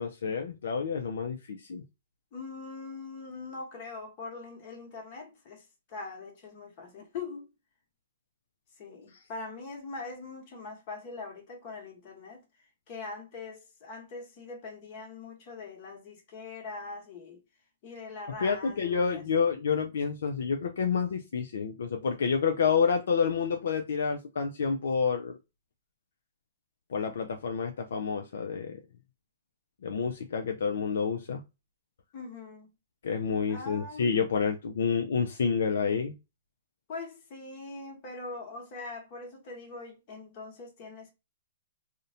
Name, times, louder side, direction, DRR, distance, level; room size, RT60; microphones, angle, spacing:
voice 1, 0.0-1.8 18.4-25.4 26.9-28.8 29.8-31.4 33.0-36.1, left 6 dB, 75° left, 0.3 m, -29 dB
voice 2, 2.3-7.5 8.8-17.4 17.8-19.3 32.1-32.7 33.5-34.1 36.9-41.1, left 3 dB, 45° left, 1.0 m, -42 dB
2.5 x 2.1 x 2.6 m
hypercardioid pair, 130°, 0 cm